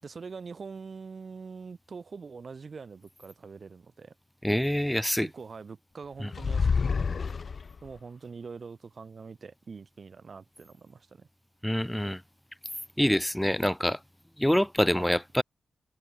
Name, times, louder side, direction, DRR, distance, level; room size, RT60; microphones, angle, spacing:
voice 1, 0.0-4.1 5.2-7.0 7.8-11.3 14.9-15.1, right 5 dB, 55° right, 3.0 m, -44 dB
voice 2, 4.4-5.3 6.2-6.3 11.6-12.2 13.0-14.0 14.4-15.4, equal, 5° left, 1.1 m, -25 dB
sound 1, 6.3-8.0, left 5 dB, 55° left, 0.7 m, -28 dB
supercardioid pair, 45°, 0 cm